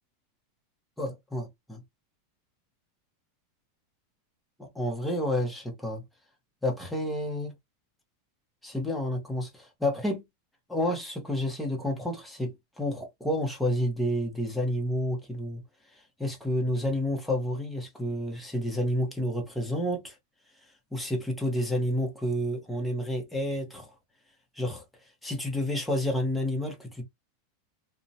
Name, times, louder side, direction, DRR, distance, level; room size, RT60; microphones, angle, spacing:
voice 1, 1.0-1.8 4.6-6.0 6.6-7.5 8.6-10.2 10.7-15.6 16.2-20.1 20.9-23.9 24.6-24.8 25.2-27.0, left 1 dB, 5° left, 0.9 m, -30 dB
2.8 x 2.2 x 2.6 m
supercardioid pair, 135°, 0 cm